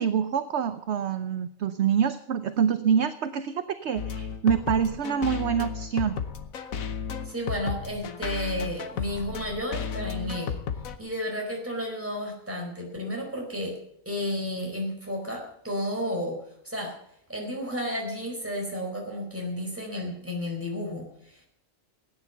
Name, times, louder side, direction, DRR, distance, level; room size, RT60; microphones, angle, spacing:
voice 1, 0.0-6.2, right 7 dB, 60° right, 10 dB, 1.0 m, -26 dB
sound 1, 4.0-11.0, left 7 dB, 85° left, 1.5 m, -33 dB
voice 2, 7.2-10.6 11.0-13.7 14.0-16.4 16.6-17.0 17.3-21.5, equal, 10° right, 0 dB, 4.5 m, -32 dB
16.5 x 9.8 x 7.0 m, 0.74 s
omnidirectional pair, 1.4 m